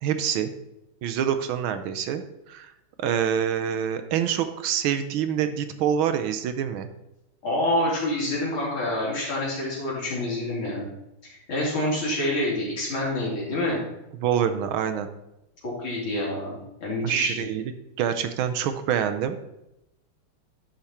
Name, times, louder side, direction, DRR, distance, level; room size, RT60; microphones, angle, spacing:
voice 1, 0.0-0.5 1.0-2.2 2.5-2.7 3.0-6.9 14.2-15.1 17.0-17.6 18.0-19.4, right 9 dB, 75° right, 9 dB, 1.4 m, -26 dB
voice 2, 7.4-10.9 11.2-13.8 15.6-17.5, left 1 dB, 70° left, -5 dB, 3.8 m, -27 dB
11.5 x 5.1 x 4.3 m, 0.89 s
omnidirectional pair, 2.4 m